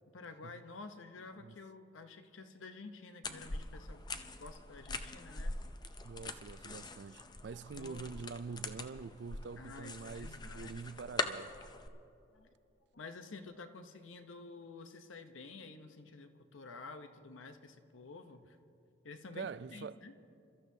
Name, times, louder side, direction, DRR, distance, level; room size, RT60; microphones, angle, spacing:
voice 1, 0.1-5.6 7.7-8.1 9.6-10.9 12.3-12.5 12.9-18.6 19.0-20.1, left 3 dB, 85° left, 0.8 m, -51 dB
sound 1, 3.2-11.9, left 3 dB, 20° left, 0.5 m, -43 dB
voice 2, 6.0-11.5 19.4-20.0, right 5 dB, 60° right, 0.3 m, -45 dB
28.0 x 14.0 x 2.8 m
head